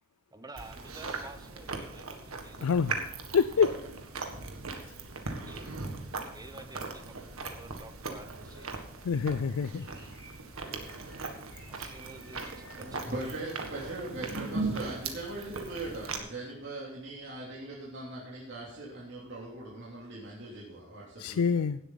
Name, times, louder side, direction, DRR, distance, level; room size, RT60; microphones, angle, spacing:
voice 1, 0.3-2.8 5.5-5.7 6.2-8.7 11.7-13.2, right 2 dB, 15° right, 9 dB, 1.0 m, -50 dB
Chewing mastication, 0.6-16.2, right 3 dB, 70° right, 1.8 m, -39 dB
voice 2, 2.6-3.0 3.3-3.7 9.0-9.8 21.2-21.8, left 6 dB, 80° left, 14 dB, 0.4 m, -26 dB
Bird, 9.0-13.9, equal, 10° left, 4.2 m, -57 dB
voice 3, 11.9-21.6, right 2 dB, 55° right, -5 dB, 3.1 m, -40 dB
17.0 x 8.1 x 4.0 m, 0.82 s
head